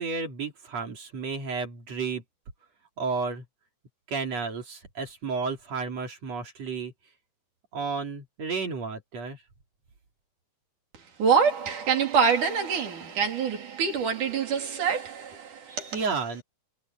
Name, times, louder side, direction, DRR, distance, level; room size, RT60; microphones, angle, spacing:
voice 1, 0.0-2.2 3.0-3.4 4.1-6.9 7.7-9.4 15.7-16.4, right 4 dB, 55° right, 4.3 m, -32 dB
voice 2, 11.2-16.0, right 6 dB, 80° right, 4.9 m, -25 dB
omnidirectional pair, 3.5 m